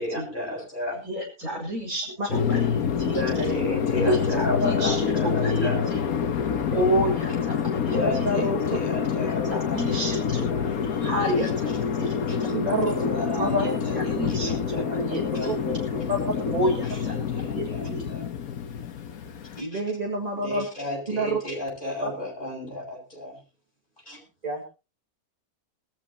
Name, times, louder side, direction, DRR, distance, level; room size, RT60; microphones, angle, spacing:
voice 1, 0.0-1.0 3.1-5.8 7.9-10.1 10.5-10.8 11.4-11.8 12.3-12.5 12.9-18.3 19.6-19.8 20.3-23.4 24.1-24.2, left 1 dB, 35° left, -1 dB, 7.6 m, -34 dB
voice 2, 1.0-3.2 3.9-6.0 6.7-8.3 9.1-10.5 11.0-11.7 12.0-12.4 13.6-13.7 14.1-14.5 14.9-15.5 16.5-18.0, right 1 dB, 75° right, 1 dB, 6.8 m, -30 dB
sound 1, 2.3-19.6, left 7 dB, 80° left, 1.5 m, -27 dB
voice 3, 8.0-8.6 12.5-12.9 13.4-13.7 13.9-14.0 15.4-15.6 19.6-20.7 21.1-21.4 22.0-22.1 24.4-24.6, equal, 25° right, 2 dB, 2.3 m, -27 dB
22.0 x 14.0 x 2.9 m, 0.31 s
omnidirectional pair, 1.5 m